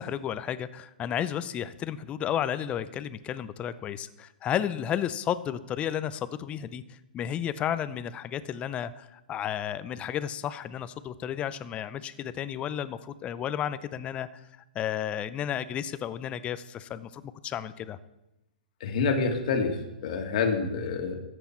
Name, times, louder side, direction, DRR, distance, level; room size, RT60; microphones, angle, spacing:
voice 1, 0.0-14.4 14.7-18.0, left 10 dB, 25° left, 15 dB, 0.6 m, -32 dB
voice 2, 18.8-21.2, left 4 dB, 55° left, 6 dB, 1.8 m, -27 dB
14.0 x 8.1 x 4.5 m, 0.95 s
hypercardioid pair, 120°, 5 cm